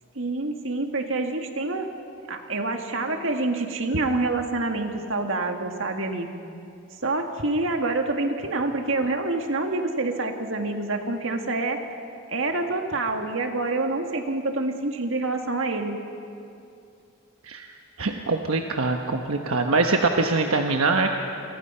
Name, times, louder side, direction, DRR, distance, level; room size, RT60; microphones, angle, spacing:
voice 1, 0.2-1.9 2.3-6.3 7.0-11.8 12.3-16.0, right 2 dB, 70° right, 4 dB, 2.0 m, -27 dB
voice 2, 18.0-21.2, right 3 dB, 90° right, 3 dB, 1.2 m, -23 dB
29.0 x 24.0 x 5.7 m, 2.6 s
head